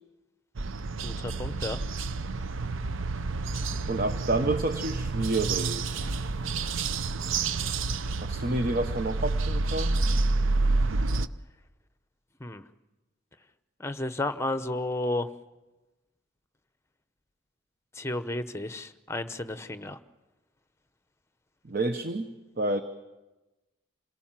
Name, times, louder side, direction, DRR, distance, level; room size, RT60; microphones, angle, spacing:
sound 1, 0.6-11.3, right 3 dB, 75° right, 0.7 m, -29 dB
voice 1, 1.0-1.8 12.4-12.6 13.8-15.3 17.9-20.0, left 2 dB, 15° left, 11 dB, 0.8 m, -32 dB
voice 2, 3.9-6.3 8.2-10.0 21.6-22.8, right 2 dB, 45° right, 8 dB, 1.0 m, -29 dB
27.5 x 18.0 x 7.5 m, 1.1 s
head